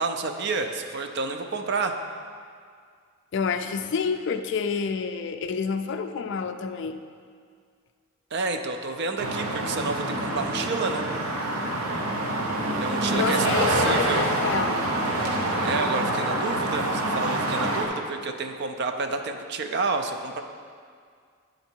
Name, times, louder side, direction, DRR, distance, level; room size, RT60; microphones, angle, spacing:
voice 1, 0.0-1.9 8.3-11.1 12.8-14.3 15.6-20.4, right 3 dB, 50° right, 6 dB, 0.4 m, -29 dB
voice 2, 3.3-7.0 11.9-12.1 13.1-14.9, left 5 dB, 55° left, 8 dB, 0.3 m, -29 dB
sound 1, 9.2-17.9, right 1 dB, 85° right, 0.8 m, -26 dB
9.3 x 3.9 x 4.5 m, 2.1 s
head